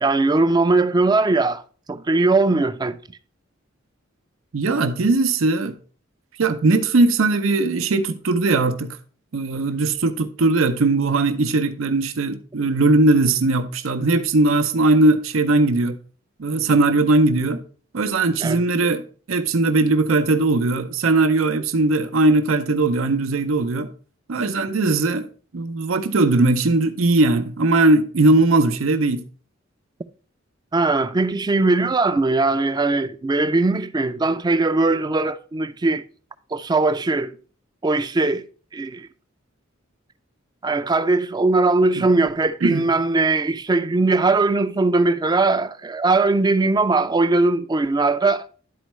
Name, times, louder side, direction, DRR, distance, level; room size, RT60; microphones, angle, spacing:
voice 1, 0.0-1.6 1.9-3.0 18.4-18.6 30.7-36.0 36.5-37.4 37.8-38.4 38.7-39.1 40.6-48.4, right 3 dB, 20° right, 0.4 m, -20 dB
voice 2, 4.5-5.7 6.4-9.0 9.3-16.0 16.4-17.6 17.9-23.9 24.3-29.2 42.0-42.1 42.6-42.8, right 2 dB, 90° right, 0.6 m, -19 dB
11.0 x 4.5 x 3.1 m
head